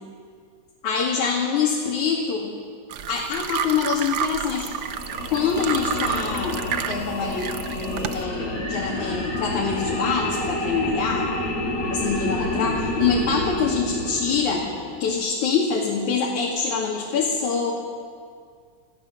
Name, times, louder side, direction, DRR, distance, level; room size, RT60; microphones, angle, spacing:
voice 1, 0.8-2.5 3.1-4.7 5.3-11.3 11.9-14.7 15.0-17.7, left 5 dB, 85° left, -3 dB, 3.7 m, -25 dB
sound 1, 2.9-8.2, right 8 dB, 75° right, 1.1 m, -30 dB
sound 2, 4.8-15.2, left 2 dB, 65° left, 5.1 m, -29 dB
27.5 x 15.5 x 7.5 m, 2.1 s
omnidirectional pair, 3.3 m